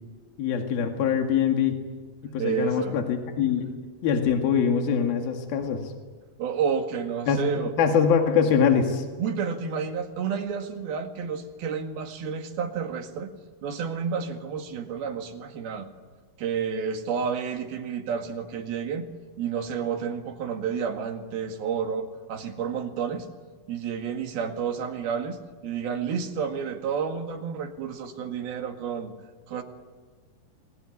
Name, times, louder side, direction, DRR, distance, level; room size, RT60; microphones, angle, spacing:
voice 1, 0.4-1.7 2.2-3.7 4.0-5.8 7.3-7.4 7.8-9.0, left 7 dB, 75° left, 4 dB, 4.0 m, -23 dB
voice 2, 2.4-3.0 6.4-7.7 9.2-13.3 13.6-15.9 16.4-19.1 19.4-23.3 23.7-29.1 29.5-29.6, right 6 dB, 80° right, 5 dB, 3.8 m, -30 dB
28.0 x 21.0 x 9.9 m, 1.5 s
omnidirectional pair, 4.3 m